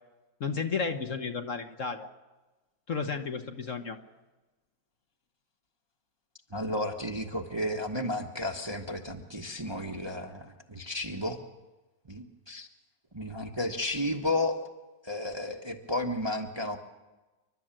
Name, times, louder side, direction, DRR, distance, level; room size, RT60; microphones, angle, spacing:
voice 1, 0.4-2.1 2.9-4.0, left 5 dB, 50° left, 6 dB, 1.4 m, -32 dB
voice 2, 6.5-11.4 12.1-12.7 13.1-14.6 15.0-16.8, left 1 dB, 15° right, 3 dB, 1.1 m, -32 dB
28.0 x 12.0 x 9.0 m, 1.2 s
omnidirectional pair, 1.9 m